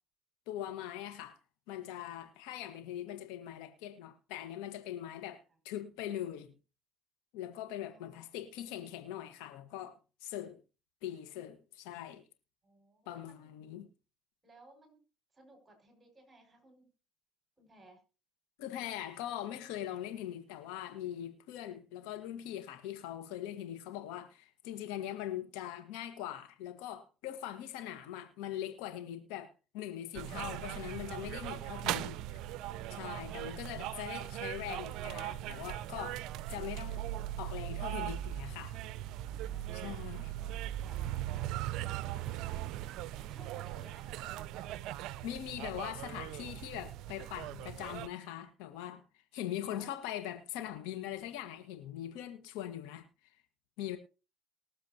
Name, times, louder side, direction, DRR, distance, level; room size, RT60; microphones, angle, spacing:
voice 1, 0.5-1.4 1.7-6.5 7.3-10.6 11.0-12.2 13.0-13.9 18.6-32.2 32.9-36.2 36.5-37.1 37.4-38.7 39.7-40.3 45.2-49.0 49.3-53.1 53.8-54.0, left 11 dB, 85° left, 1.7 m, -41 dB
voice 2, 7.9-8.3 12.6-13.5 14.4-15.0 15.3-16.9 17.6-18.0 39.4-44.7 49.6-50.1, right 2 dB, 25° right, 5.9 m, -60 dB
sound 1, 30.1-48.1, right 13 dB, 70° right, 0.5 m, -39 dB
22.0 x 7.4 x 3.0 m
supercardioid pair, 85°, 0 cm